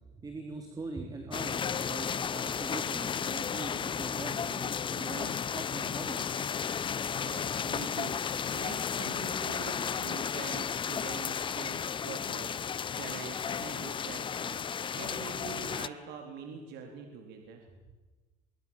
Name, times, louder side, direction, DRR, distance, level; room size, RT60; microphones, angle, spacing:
voice 1, 0.1-6.3, right 3 dB, 20° right, 4 dB, 3.6 m, -42 dB
sound 1, 1.3-15.9, left 7 dB, 25° left, 0.8 m, -34 dB
voice 2, 7.2-17.7, right 5 dB, 65° right, 3 dB, 3.9 m, -44 dB
25.5 x 23.5 x 7.4 m, 1.2 s
cardioid pair, 125°, 18 cm